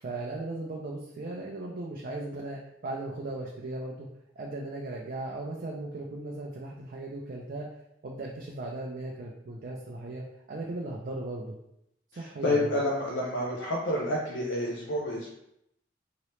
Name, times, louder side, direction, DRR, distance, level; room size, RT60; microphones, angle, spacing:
voice 1, 0.0-4.1 4.4-7.7 8.0-11.6 12.2-12.7, right 2 dB, 50° right, -1 dB, 0.4 m, -37 dB
voice 2, 12.1-15.4, left 1 dB, 85° left, -2 dB, 0.5 m, -29 dB
2.9 x 2.9 x 3.1 m, 0.79 s
head